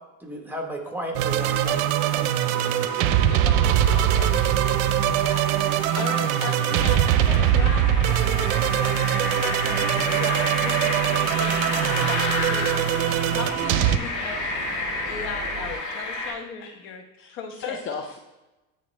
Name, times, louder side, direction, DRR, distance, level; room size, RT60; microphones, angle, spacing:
voice 1, 0.2-3.0, right 1 dB, 5° right, 1 dB, 1.1 m, -35 dB
sound 1, 1.1-14.0, right 11 dB, 70° right, 0.6 m, -22 dB
sound 2, 1.3-16.3, left 3 dB, 50° left, 1.7 m, -32 dB
voice 2, 3.2-11.8 12.1-12.8 13.3-17.0 17.3-17.8, left 5 dB, 75° left, 5 dB, 1.1 m, -37 dB
sound 3, 8.5-15.8, right 4 dB, 25° right, 0.5 m, -39 dB
voice 3, 16.6-18.3, left 5 dB, 30° left, 2 dB, 0.6 m, -36 dB
9.4 x 3.8 x 3.2 m, 1.0 s
supercardioid pair, 110°, 41 cm